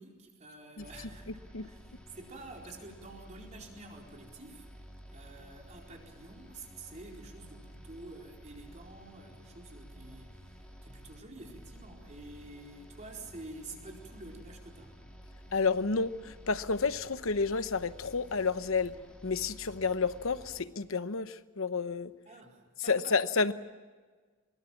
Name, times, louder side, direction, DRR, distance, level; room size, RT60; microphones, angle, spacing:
voice 1, 0.0-14.9 22.3-23.5, right 2 dB, 35° right, 0 dB, 4.5 m, -49 dB
sound 1, 0.8-20.6, equal, 5° left, 3.5 m, -52 dB
voice 2, 15.5-18.9 19.2-22.1 22.9-23.5, left 4 dB, 75° left, 13 dB, 1.0 m, -30 dB
23.5 x 22.5 x 7.3 m, 1.4 s
head